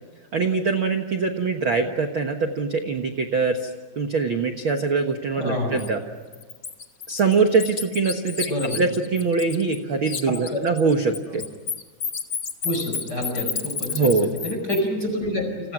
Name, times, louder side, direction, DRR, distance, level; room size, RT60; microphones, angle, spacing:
voice 1, 0.3-3.7 4.0-6.0 7.1-11.4 13.9-14.3, right 4 dB, 70° right, 5 dB, 1.2 m, -23 dB
voice 2, 5.4-5.9 8.5-8.8 10.5-10.6 11.3-11.4 12.6-15.7, left 1 dB, 25° left, 3 dB, 5.3 m, -28 dB
Bird, 5.8-5.9 6.3-9.8 10.1-14.8, left 6 dB, 60° left, 1.0 m, -31 dB
29.5 x 29.5 x 6.1 m, 1.3 s
omnidirectional pair, 4.6 m